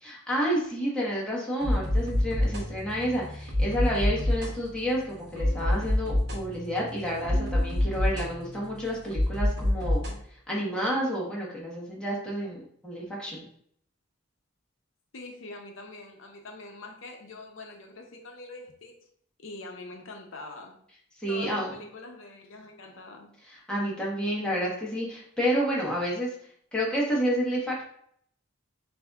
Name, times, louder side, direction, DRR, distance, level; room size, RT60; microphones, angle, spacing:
voice 1, 0.0-10.0 10.5-13.4 21.2-21.7 23.5-26.3 26.7-27.8, equal, 5° left, -5 dB, 1.1 m, -30 dB
sound 1, 1.6-10.2, left 1 dB, 50° right, 1.0 m, -28 dB
voice 2, 15.1-18.9 19.4-20.8 21.3-23.3, left 2 dB, 65° left, 2 dB, 0.7 m, -44 dB
7.7 x 2.7 x 2.3 m, 0.65 s
head